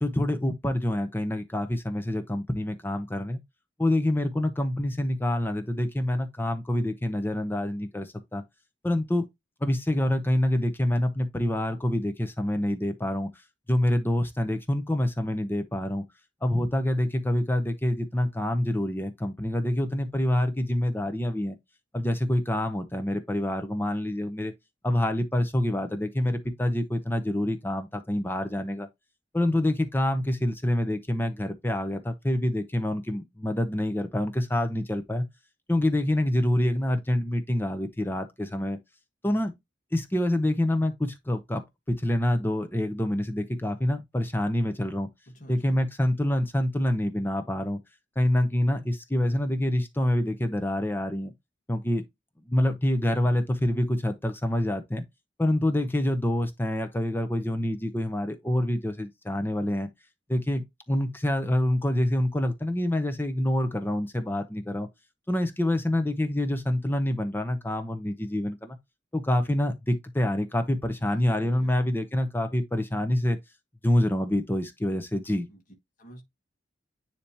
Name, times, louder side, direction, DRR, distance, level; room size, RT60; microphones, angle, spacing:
voice 1, 0.0-3.4 3.8-8.4 8.8-9.3 9.6-13.3 13.7-16.0 16.4-21.6 21.9-24.5 24.8-28.9 29.3-35.3 35.7-38.8 39.2-39.5 39.9-45.1 45.5-47.8 48.2-51.3 51.7-52.0 52.5-55.0 55.4-59.9 60.3-64.9 65.3-68.8 69.1-73.4 73.8-75.5, left 1 dB, 10° left, 0.6 m, -26 dB
voice 2, 45.3-45.8 71.0-71.8 75.5-75.6 76.0-76.2, right 1 dB, 45° left, 1.6 m, -49 dB
10.0 x 3.3 x 2.8 m
head